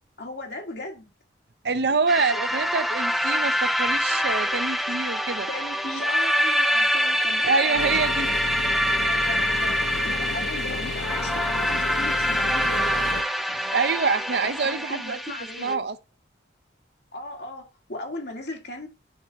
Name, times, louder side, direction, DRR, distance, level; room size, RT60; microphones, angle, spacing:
voice 1, 0.2-1.1 5.5-8.2 9.1-13.1 14.4-15.8 17.1-18.9, left 2 dB, 65° left, 2.3 m, -37 dB
voice 2, 1.6-5.5 7.4-8.3 13.5-15.2 15.6-16.0, right 4 dB, 65° right, 0.6 m, -25 dB
sound 1, 2.1-15.7, equal, ahead, 0.4 m, -25 dB
sound 2, 7.8-13.2, left 4 dB, 85° left, 0.7 m, -33 dB
10.5 x 4.3 x 3.5 m
head